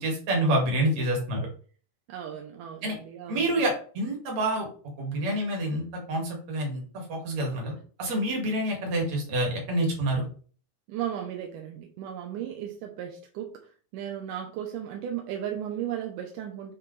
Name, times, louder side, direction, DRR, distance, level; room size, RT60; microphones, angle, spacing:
voice 1, 0.0-1.5 2.8-3.0 3.3-4.7 5.0-7.7 8.0-10.2, right 1 dB, 60° right, 0 dB, 3.1 m, -27 dB
voice 2, 2.1-3.5 10.9-13.5 13.9-16.7, right 10 dB, 85° right, 2 dB, 2.4 m, -35 dB
8.9 x 3.6 x 3.2 m, 0.41 s
omnidirectional pair, 3.7 m